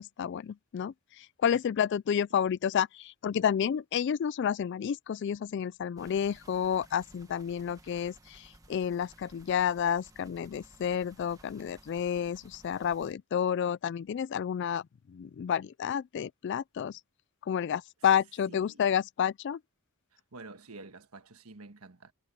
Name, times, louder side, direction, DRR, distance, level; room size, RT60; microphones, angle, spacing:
voice 1, 0.0-17.0 17.4-19.6, left 8 dB, 55° left, 0.3 m, -30 dB
sound 1, 6.0-13.1, right 1 dB, 15° right, 1.5 m, -57 dB
voice 2, 18.5-18.8 20.1-22.1, right 3 dB, 85° right, 1.4 m, -49 dB
head